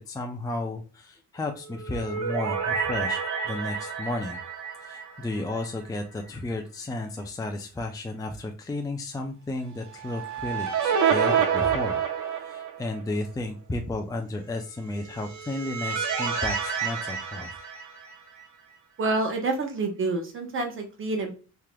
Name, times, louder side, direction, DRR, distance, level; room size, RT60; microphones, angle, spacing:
voice 1, 0.1-4.4 4.8-12.0 12.4-16.6 16.8-17.5, left 2 dB, 10° left, 3 dB, 0.5 m, -33 dB
sound 1, 1.7-6.0 6.3-6.4 9.9-13.0 15.0-18.4, right 7 dB, 70° right, 0.9 m, -29 dB
voice 2, 19.0-21.3, right 3 dB, 45° right, 4 dB, 1.0 m, -28 dB
3.4 x 2.9 x 2.3 m, 0.35 s
cardioid pair, 90°, 30 cm